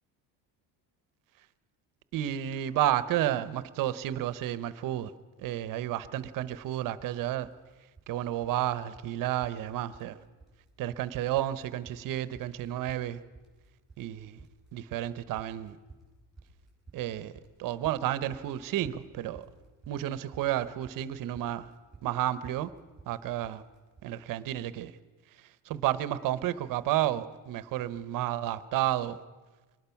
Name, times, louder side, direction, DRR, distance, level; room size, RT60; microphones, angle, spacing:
voice 1, 2.1-5.1 5.4-7.5 8.1-10.2 10.8-13.2 14.0-14.4 14.7-15.8 16.9-17.3 17.6-19.4 19.9-21.7 22.0-22.7 23.1-23.6 24.0-24.9 25.7-29.2, right 13 dB, 50° right, 0.9 m, -31 dB
sound 1, 6.0-6.2 6.5-7.1 7.4-8.2 8.4-8.7 8.9-9.1 9.4-10.2 10.4-11.1 11.4-24.2, right 3 dB, ahead, 5.3 m, -54 dB
23.5 x 19.0 x 5.8 m
cardioid pair, 170°, 42 cm